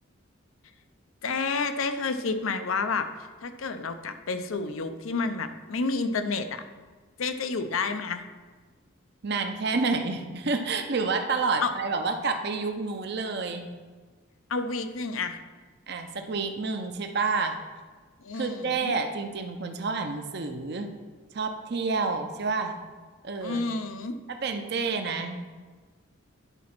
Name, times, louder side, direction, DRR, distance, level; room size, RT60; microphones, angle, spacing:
voice 1, 1.2-3.1 3.4-6.6 7.2-8.2 11.6-11.7 14.5-15.4 18.2-18.9 23.4-24.2, left 4 dB, 85° left, 9 dB, 0.7 m, -30 dB
voice 2, 9.2-13.7 15.9-17.6 18.3-20.9 21.3-22.7 23.2-23.6 24.3-25.4, right 4 dB, 55° right, 5 dB, 0.7 m, -29 dB
9.9 x 4.2 x 6.0 m, 1.4 s
head